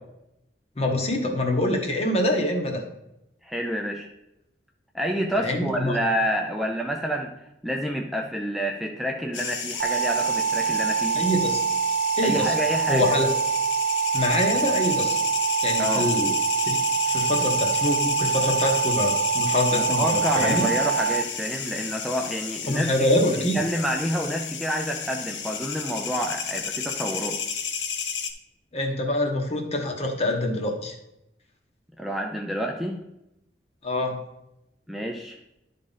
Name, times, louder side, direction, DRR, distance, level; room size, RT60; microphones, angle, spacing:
voice 1, 0.8-2.8 5.4-6.0 11.1-11.6 12.2-12.5 12.9-13.3 14.1-15.2 15.6-16.3 16.6-16.8 17.1-20.7 22.7-23.6 28.7-30.9 33.8-34.2, left 1 dB, 35° left, 3 dB, 1.1 m, -25 dB
voice 2, 3.4-4.1 4.9-7.3 7.6-11.2 12.2-13.1 15.8-16.2 19.7-27.4 32.0-33.0 34.9-35.4, equal, ahead, 0 dB, 0.5 m, -28 dB
sound 1, 9.3-28.3, left 6 dB, 90° left, 0.8 m, -32 dB
sound 2, 9.8-21.2, right 6 dB, 60° right, 0.4 m, -25 dB
11.0 x 3.7 x 4.0 m, 0.86 s
head